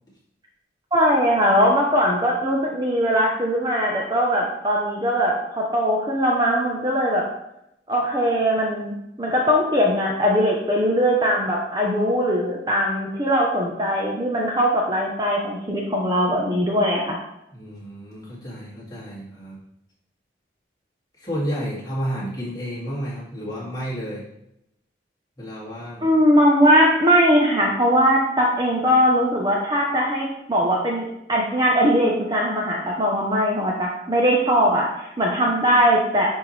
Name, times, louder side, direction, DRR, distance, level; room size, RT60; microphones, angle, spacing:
voice 1, 0.9-7.2 7.9-17.2 26.0-31.0 31.3-36.3, equal, 25° right, -2 dB, 1.0 m, -20 dB
voice 2, 17.5-19.6 21.2-24.2 25.4-26.1, equal, 20° left, -7 dB, 2.5 m, -31 dB
10.0 x 4.5 x 3.4 m, 0.81 s
head